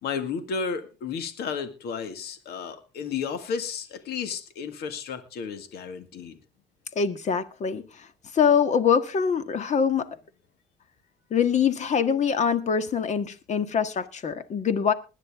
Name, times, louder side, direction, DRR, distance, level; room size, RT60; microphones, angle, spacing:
voice 1, 0.0-6.4, left 6 dB, 70° left, 2.0 m, -33 dB
voice 2, 6.9-8.1 8.3-10.1 11.3-14.9, left 7 dB, 45° left, 1.6 m, -24 dB
20.5 x 9.9 x 3.6 m
cardioid pair, 110°, 17 cm